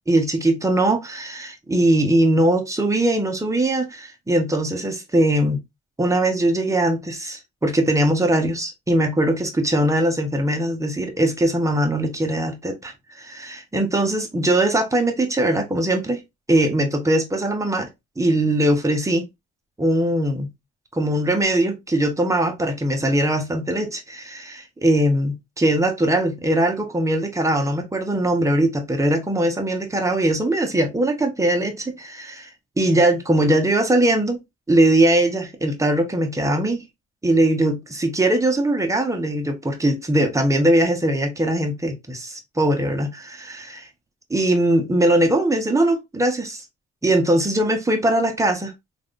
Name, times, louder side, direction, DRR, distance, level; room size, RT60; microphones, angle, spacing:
voice 1, 0.1-5.6 6.0-16.2 16.5-17.9 18.2-19.2 19.8-20.5 20.9-32.5 32.8-34.4 34.7-36.8 37.2-43.8 44.3-46.6 47.0-48.7, right 1 dB, 10° right, 0.8 m, -21 dB
3.3 x 2.5 x 2.5 m
cardioid pair, 90°, 30 cm